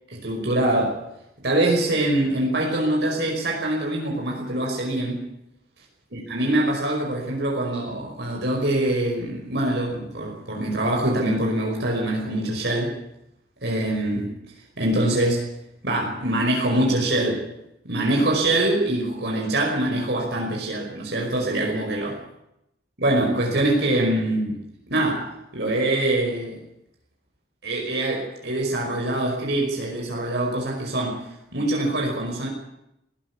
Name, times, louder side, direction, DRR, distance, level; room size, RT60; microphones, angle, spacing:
voice 1, 0.2-1.0 1.4-5.3 6.1-13.0 13.6-14.3 14.8-15.5 15.8-17.5 17.9-22.2 23.0-24.6 24.9-26.6 27.6-32.5, right 1 dB, 65° right, 0 dB, 5.4 m, -24 dB
20.0 x 15.0 x 9.7 m, 0.84 s
head